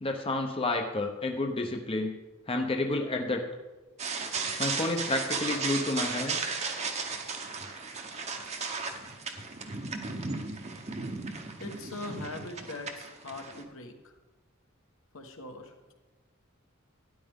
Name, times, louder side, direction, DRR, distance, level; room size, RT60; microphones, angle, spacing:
voice 1, 0.0-2.1 2.5-3.4 4.6-6.4, left 2 dB, 25° left, 4 dB, 0.7 m, -30 dB
sound 1, 4.0-13.6, right 4 dB, 30° right, 0.8 m, -35 dB
voice 2, 11.6-14.2 15.1-15.7, left 2 dB, 75° left, 4 dB, 1.3 m, -41 dB
12.5 x 9.9 x 3.6 m, 1.2 s
head